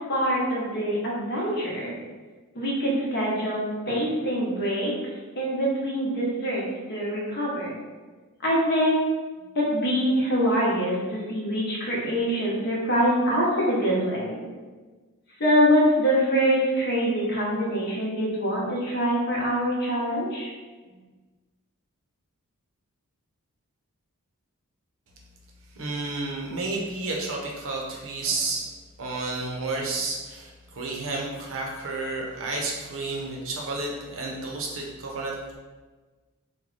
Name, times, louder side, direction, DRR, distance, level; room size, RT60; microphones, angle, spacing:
voice 1, 0.1-1.9 2.5-3.6 3.9-4.9 5.4-6.6 6.9-7.8 8.4-9.0 9.5-14.4 15.4-20.5, equal, 50° left, -4 dB, 0.9 m, -24 dB
voice 2, 25.7-28.7 29.0-35.6, right 3 dB, 65° right, -1 dB, 0.7 m, -31 dB
3.1 x 2.2 x 3.8 m, 1.3 s
head